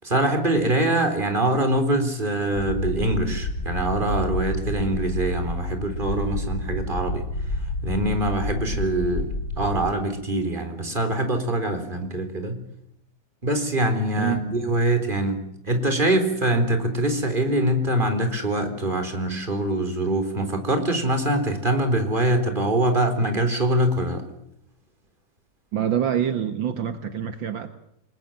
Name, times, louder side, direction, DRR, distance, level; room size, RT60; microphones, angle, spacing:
voice 1, 0.0-7.2 7.8-9.3 9.6-12.6 13.4-24.2, right 1 dB, 25° right, 7 dB, 4.1 m, -24 dB
sound 1, 2.5-9.9, left 1 dB, 55° left, 5.1 m, -29 dB
voice 2, 25.7-27.7, right 9 dB, 70° right, 9 dB, 2.0 m, -25 dB
28.0 x 21.0 x 9.1 m, 0.75 s
omnidirectional pair, 2.2 m